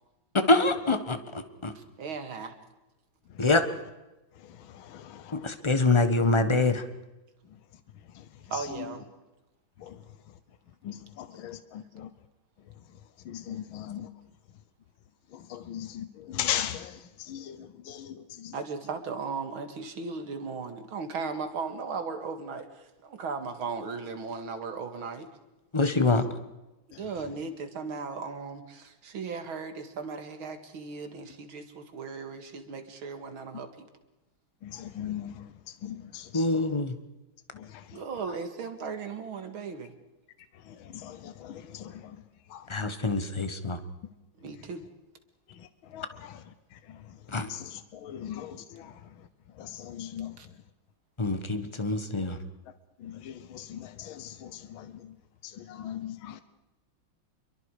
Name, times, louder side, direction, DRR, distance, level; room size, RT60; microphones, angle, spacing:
voice 1, 0.3-1.7 3.4-3.6 5.3-6.8 25.7-26.2 36.3-37.0 42.7-43.8 47.3-47.5 51.2-52.4, left 3 dB, 20° left, 1.0 m, -25 dB
voice 2, 1.8-2.5 8.5-9.1 18.5-25.3 27.0-33.9 37.9-39.9 44.4-44.8 50.4-50.5, right 5 dB, 80° right, 2.7 m, -37 dB
voice 3, 4.4-5.6 8.1-8.9 9.8-10.0 10.8-12.1 13.2-14.1 15.3-18.6 26.0-26.2 26.9-27.0 34.6-36.5 37.5-38.0 40.6-42.2 42.5-42.7 45.5-46.4 46.7-49.1 49.5-50.4 53.0-55.1 55.4-56.4, left 11 dB, 80° left, 1.8 m, -39 dB
28.0 x 23.0 x 4.9 m
omnidirectional pair, 2.2 m